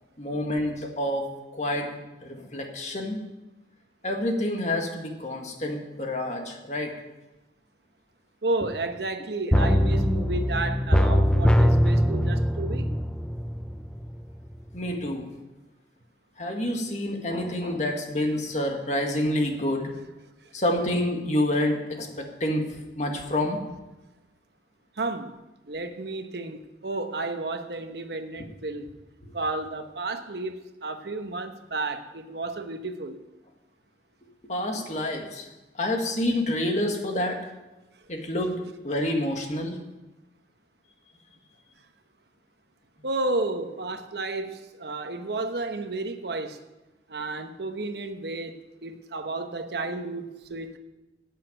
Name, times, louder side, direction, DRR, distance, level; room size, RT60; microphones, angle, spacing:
voice 1, 0.2-1.9 2.2-3.2 4.0-6.9 14.7-15.3 16.4-19.9 20.5-22.6 22.9-23.6 34.4-35.5 35.8-37.4 38.1-39.8, left 1 dB, 40° left, 2.0 m, -28 dB
voice 2, 8.4-12.9 24.9-25.4 25.7-29.0 29.3-33.2 43.0-46.6 47.1-50.8, right 2 dB, 70° right, 1.1 m, -32 dB
sound 1, 9.5-14.2 14.5-14.6, equal, 5° left, 0.5 m, -22 dB
10.5 x 8.5 x 9.1 m
head